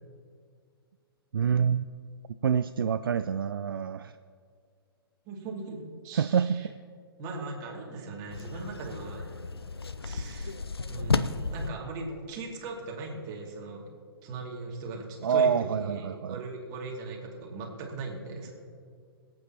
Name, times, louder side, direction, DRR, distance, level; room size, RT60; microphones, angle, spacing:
voice 1, 1.3-1.8 2.4-4.1 6.1-6.6 15.2-16.4, right 7 dB, 65° right, 12 dB, 0.4 m, -26 dB
voice 2, 5.3-6.7 7.2-9.3 10.0-10.6 10.9-13.8 14.2-18.5, right 3 dB, 30° right, -1 dB, 2.5 m, -39 dB
sound 1, 8.3-11.7, left 3 dB, 80° left, 0.6 m, -33 dB
26.5 x 8.8 x 3.0 m, 2.1 s
figure-of-eight pair, 115°, 13 cm